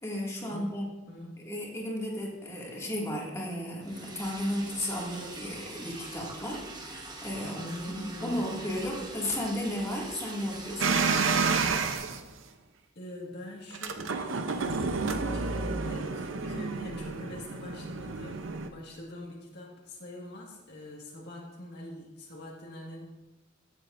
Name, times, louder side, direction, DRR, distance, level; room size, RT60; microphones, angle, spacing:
voice 1, 0.0-0.9 1.5-7.6 7.9-11.5, left 1 dB, 15° left, -3 dB, 2.1 m, -34 dB
voice 2, 1.1-1.5 7.4-8.5 13.0-18.4 18.7-23.0, left 1 dB, 55° left, -3 dB, 1.8 m, -44 dB
Liquid, 3.8-12.0, right 2 dB, 20° right, 1.1 m, -43 dB
sound 1, 10.8-12.2 13.7-18.7, right 4 dB, 75° right, 0.7 m, -30 dB
16.0 x 7.9 x 2.6 m, 1.0 s
head